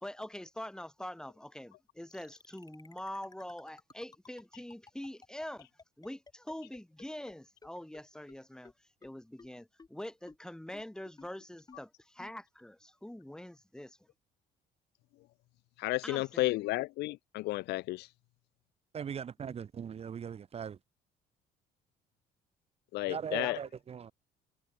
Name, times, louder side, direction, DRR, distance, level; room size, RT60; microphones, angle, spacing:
voice 1, 0.0-5.7 6.0-8.7 9.0-14.1 16.0-16.5 19.4-19.6 23.4-23.6, left 1 dB, 5° left, 2.1 m, -44 dB
sound 1, 2.1-7.3 7.6-7.7 7.9-8.0 8.3-8.4 8.7-8.8 9.0-9.1 9.4-9.5 9.8-9.9 10.3-10.4 10.7-10.8 11.2-11.3 11.7-11.8 12.2-12.3, left 4 dB, 25° left, 5.0 m, -54 dB
voice 2, 15.8-18.1 22.9-23.6, left 19 dB, 80° left, 0.5 m, -32 dB
voice 3, 18.9-20.8 23.1-24.1, right 7 dB, 35° right, 0.9 m, -40 dB
cardioid pair, 110°, 17 cm